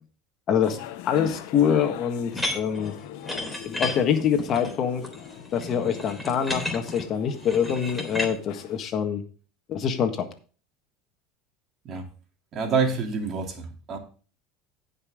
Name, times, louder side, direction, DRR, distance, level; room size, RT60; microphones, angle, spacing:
voice 1, 0.5-0.8 1.0-2.9 3.6-5.0 5.5-9.2 9.7-10.3, left 8 dB, 45° left, 7 dB, 1.6 m, -25 dB
sound 1, 0.6-8.8, left 12 dB, 70° left, 0.9 m, -42 dB
sound 2, 2.3-8.3, left 2 dB, 5° left, 3.5 m, -33 dB
voice 2, 12.5-14.0, right 5 dB, 45° right, 3 dB, 2.9 m, -27 dB
16.5 x 5.6 x 3.7 m, 0.38 s
supercardioid pair, 95°, 0 cm